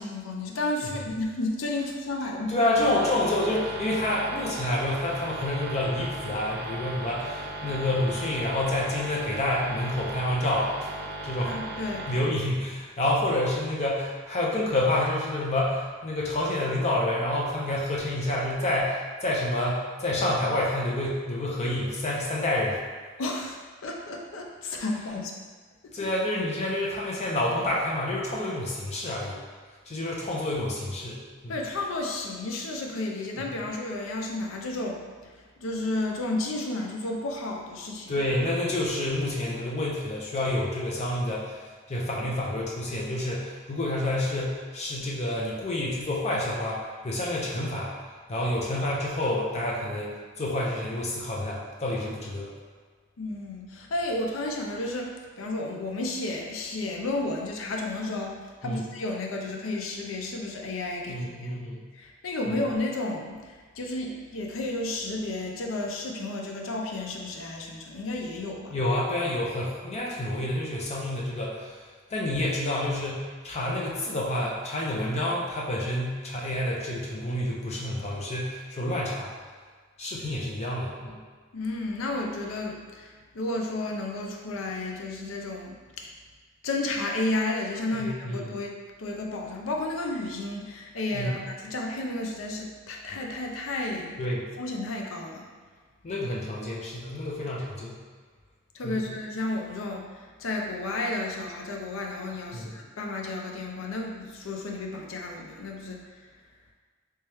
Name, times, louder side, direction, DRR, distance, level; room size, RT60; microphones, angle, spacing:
voice 1, 0.0-2.6 11.4-12.1 23.2-25.3 31.5-35.0 35.6-38.1 53.2-61.6 62.0-68.8 81.5-86.1 86.6-88.7 89.0-94.2 94.6-95.4 98.7-106.0, left 2 dB, 85° left, 1 dB, 0.5 m, -32 dB
voice 2, 2.5-10.9 11.2-11.5 12.1-22.8 25.9-29.4 29.8-31.6 33.4-33.5 38.1-41.6 41.9-47.9 48.3-52.5 58.6-58.9 61.1-61.8 62.5-62.6 68.7-71.8 72.1-79.3 80.0-81.2 87.9-88.4 91.1-91.4 94.2-94.5 96.0-98.0 98.8-99.1 102.5-102.8, left 1 dB, 35° left, -4 dB, 0.5 m, -28 dB
sound 1, 2.7-12.2, right 1 dB, 60° right, 0.4 m, -37 dB
3.3 x 3.0 x 3.3 m, 1.5 s
head